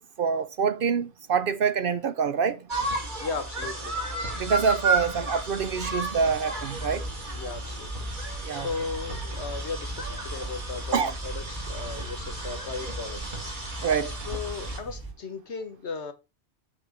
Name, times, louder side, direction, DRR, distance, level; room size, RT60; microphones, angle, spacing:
voice 1, 0.2-2.6 4.3-7.0 8.4-8.7 10.9-11.1 13.8-14.1, right 6 dB, 60° right, 0.7 m, -26 dB
sound 1, 2.7-14.8, right 2 dB, 45° right, 1.9 m, -33 dB
voice 2, 3.2-4.0 7.4-7.9 8.5-13.7 14.0-16.1, left 4 dB, 70° left, 1.5 m, -36 dB
sound 2, 4.9-15.1, right 2 dB, 20° right, 1.5 m, -40 dB
7.8 x 3.3 x 6.1 m
omnidirectional pair, 1.2 m